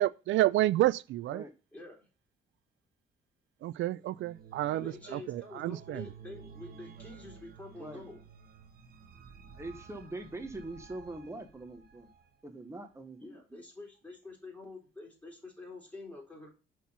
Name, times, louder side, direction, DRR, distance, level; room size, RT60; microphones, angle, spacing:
voice 1, 0.0-1.4 3.6-6.1, right 15 dB, 75° right, 0.4 m, -29 dB
voice 2, 1.7-2.1 4.7-8.2 13.2-16.5, left 2 dB, 5° left, 3.7 m, -47 dB
sound 1, 4.0-12.3, right 6 dB, 50° right, 1.2 m, -53 dB
voice 3, 9.6-12.1 12.4-13.6, right 2 dB, 15° right, 1.2 m, -43 dB
6.0 x 4.5 x 5.5 m
cardioid pair, 90°, 20 cm